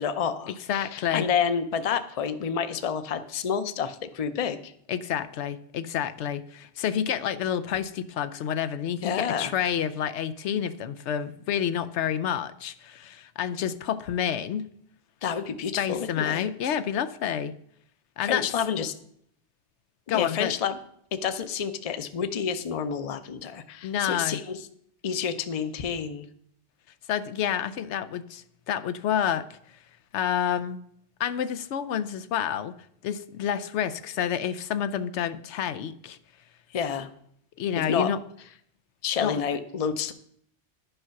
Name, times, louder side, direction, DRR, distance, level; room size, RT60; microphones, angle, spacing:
voice 1, 0.0-4.7 9.0-9.5 15.2-16.8 18.2-18.9 20.1-20.8 21.1-24.7 25.0-26.3 36.7-37.1 37.8-38.1 39.0-40.1, left 7 dB, 40° left, 11 dB, 0.6 m, -29 dB
voice 2, 0.7-1.2 4.9-14.7 15.8-17.5 18.2-18.5 20.1-20.5 23.8-24.4 27.1-29.4 30.1-30.8 31.2-32.7 33.0-36.2 37.6-38.2 39.2-39.4, left 9 dB, 90° left, 12 dB, 0.9 m, -29 dB
11.0 x 5.6 x 5.8 m, 0.68 s
omnidirectional pair, 1.1 m